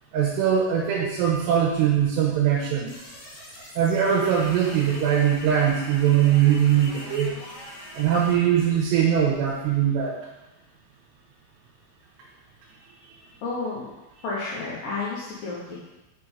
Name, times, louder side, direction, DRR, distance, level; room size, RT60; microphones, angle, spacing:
voice 1, 0.1-2.9 3.8-7.3 7.9-10.2, right 9 dB, 80° right, -3 dB, 2.7 m, -21 dB
sound 1, 2.9-8.4, left 1 dB, 50° left, 2.5 m, -41 dB
voice 2, 13.4-13.9 14.2-15.7, left 3 dB, 75° left, -7 dB, 2.1 m, -31 dB
6.6 x 3.7 x 4.4 m, 1.0 s
omnidirectional pair, 5.2 m